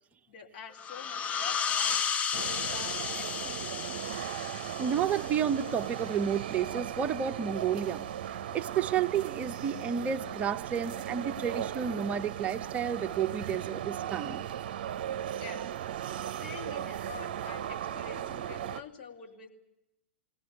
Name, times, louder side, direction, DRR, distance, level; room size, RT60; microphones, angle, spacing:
voice 1, 0.3-2.0 2.3-3.9 15.4-15.7 16.4-19.5, left 6 dB, 55° left, 1 dB, 3.8 m, -47 dB
sound 1, 0.8-6.1, left 7 dB, 25° left, 0.8 m, -34 dB
sound 2, 2.3-18.8, right 10 dB, 55° right, 0.7 m, -37 dB
voice 2, 4.8-14.5, right 8 dB, 25° right, 8 dB, 0.8 m, -31 dB
22.5 x 17.0 x 9.4 m, 0.88 s
figure-of-eight pair, 100°, 6 cm